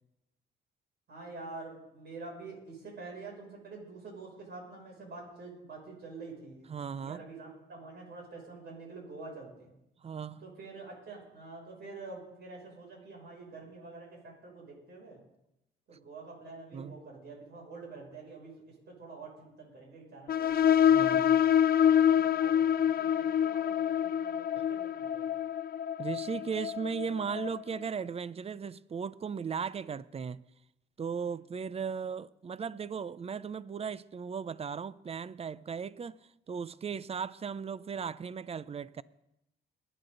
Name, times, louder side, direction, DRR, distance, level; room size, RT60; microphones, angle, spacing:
voice 1, 1.1-6.7 7.0-9.7 10.4-15.2 15.9-21.4 22.0-25.4 31.2-31.4, right 3 dB, 55° right, 6.6 m, -47 dB
voice 2, 6.7-7.2 10.0-10.4 16.7-17.0 20.9-21.4 26.0-30.4 31.0-36.2 36.5-39.0, right 6 dB, 30° right, 0.5 m, -37 dB
sound 1, 20.3-27.6, left 9 dB, 50° left, 0.7 m, -26 dB
22.0 x 10.0 x 3.9 m
cardioid pair, 90°, 20 cm